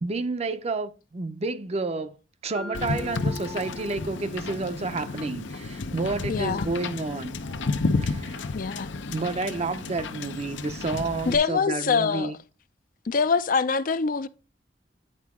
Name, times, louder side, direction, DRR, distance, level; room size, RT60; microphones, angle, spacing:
voice 1, 0.0-2.1 2.4-7.4 8.0-8.4 9.1-12.4, right 3 dB, 35° right, 0.5 m, -30 dB
Mallet percussion, 2.5-6.6, left 1 dB, 5° left, 0.7 m, -43 dB
Wind / Boat Water vehicle, 2.7-11.4, left 3 dB, 85° left, 0.7 m, -31 dB
voice 2, 6.3-6.7 8.5-8.9 11.3-12.3 13.1-14.3, left 5 dB, 50° left, 0.4 m, -24 dB
9.6 x 4.6 x 3.6 m
head